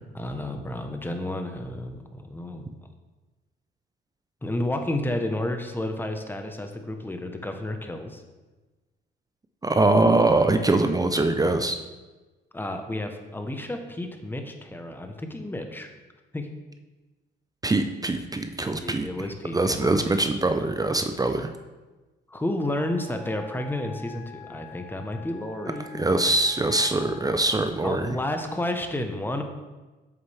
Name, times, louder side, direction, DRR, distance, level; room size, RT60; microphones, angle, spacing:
voice 1, 0.1-2.6 4.4-8.2 12.5-15.9 16.3-16.5 18.8-20.2 22.3-26.2 27.8-29.4, left 1 dB, 10° left, 5 dB, 1.0 m, -31 dB
voice 2, 9.6-11.8 17.6-19.1 19.5-21.5 25.9-28.2, right 2 dB, 20° right, 7 dB, 0.5 m, -23 dB
Wind instrument woodwind instrument, 22.5-27.7, left 3 dB, 45° left, 2.7 m, -46 dB
8.8 x 6.7 x 3.4 m, 1.2 s
cardioid pair, 90°, 20 cm